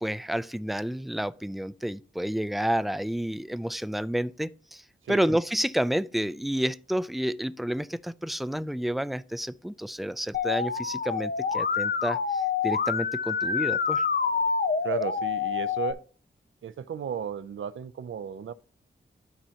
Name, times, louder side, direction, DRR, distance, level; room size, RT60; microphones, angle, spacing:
voice 1, 0.0-4.8 5.1-14.0, equal, ahead, 0.3 m, -30 dB
voice 2, 5.0-5.4 14.8-16.0 16.6-18.5, right 7 dB, 85° right, 0.5 m, -34 dB
Musical instrument, 10.3-15.9, left 6 dB, 50° left, 0.7 m, -27 dB
13.0 x 4.4 x 2.8 m
wide cardioid pair, 80°, 20 cm